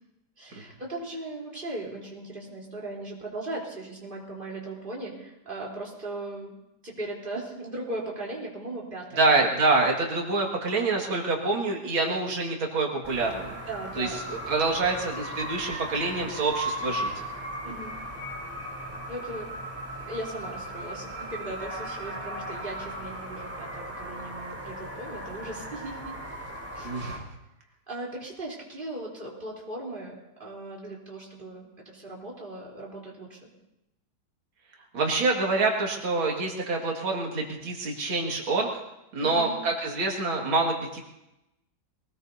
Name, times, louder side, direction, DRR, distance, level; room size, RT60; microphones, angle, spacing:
voice 1, 0.4-6.5 6.8-9.3 13.4-14.2 17.6-18.0 19.1-19.5 20.0-26.1 26.7-26.9 27.9-33.5 39.2-39.6, right 2 dB, 25° right, -3 dB, 3.9 m, -38 dB
voice 2, 9.2-13.5 14.0-17.1 26.8-27.2 34.9-38.7 39.1-41.0, right 3 dB, 90° right, 0 dB, 2.9 m, -26 dB
sound 1, 13.0-27.2, right 1 dB, 5° right, 3.5 m, -37 dB
22.5 x 19.0 x 2.8 m, 0.90 s
omnidirectional pair, 2.1 m